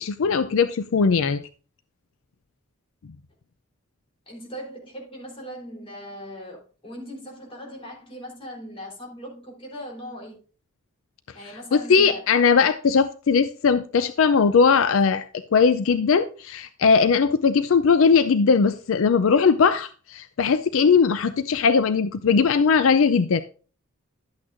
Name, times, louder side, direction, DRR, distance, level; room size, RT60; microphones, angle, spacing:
voice 1, 0.0-1.4 11.7-15.2 15.5-23.4, left 5 dB, 70° left, 12 dB, 0.4 m, -19 dB
voice 2, 4.3-10.4 11.3-12.2, equal, 25° left, -2 dB, 3.7 m, -39 dB
12.0 x 8.6 x 2.5 m, 0.38 s
head